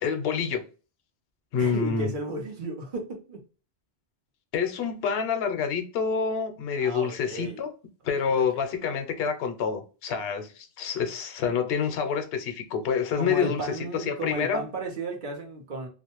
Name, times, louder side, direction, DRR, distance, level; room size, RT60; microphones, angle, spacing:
voice 1, 0.0-0.6 1.5-2.1 4.5-7.7 8.0-14.7, left 6 dB, 70° left, 0.8 m, -27 dB
voice 2, 1.6-3.4 6.8-7.6 8.2-8.6 13.1-15.9, right 2 dB, 50° right, 0.9 m, -34 dB
2.4 x 2.1 x 2.8 m
omnidirectional pair, 1.1 m